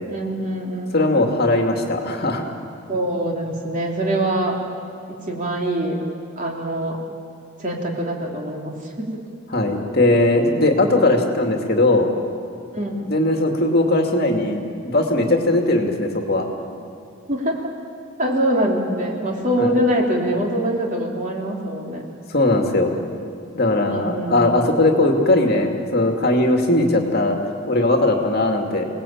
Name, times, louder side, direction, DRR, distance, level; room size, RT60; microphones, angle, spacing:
voice 1, 0.1-1.1 2.9-4.6 5.1-6.0 6.4-7.0 7.6-9.1 12.7-13.0 17.3-17.7 18.2-22.1 23.9-24.4, right 1 dB, 35° right, 0 dB, 3.4 m, -24 dB
voice 2, 0.9-2.5 9.5-12.1 13.1-16.5 19.6-19.7 22.3-22.9 23.5-27.4 27.7-28.9, left 2 dB, 45° left, 3 dB, 2.4 m, -19 dB
28.5 x 19.0 x 8.7 m, 2.4 s
head